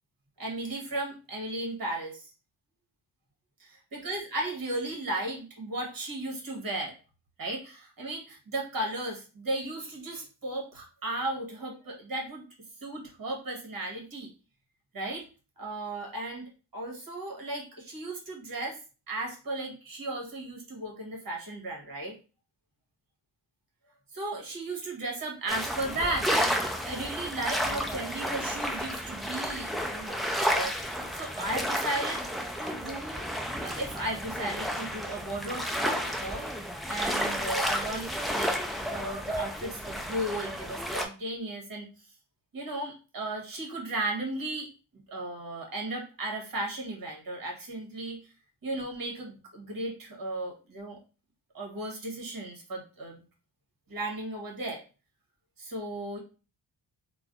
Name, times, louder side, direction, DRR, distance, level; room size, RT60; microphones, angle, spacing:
voice 1, 0.4-2.3 3.6-6.9 7.4-12.4 12.8-14.3 14.9-15.3 15.6-16.4 16.7-18.8 19.1-22.2 24.1-32.2 32.6-33.2 33.6-36.5 36.9-41.9 42.5-44.7 45.1-48.3 48.6-51.0 51.5-53.2 53.9-54.8 55.6-56.2, right 2 dB, 50° right, 0 dB, 1.2 m, -35 dB
sound 1, 25.5-41.1, equal, ahead, 0.4 m, -32 dB
3.2 x 2.2 x 2.5 m, 0.34 s
cardioid pair, 75°, 46 cm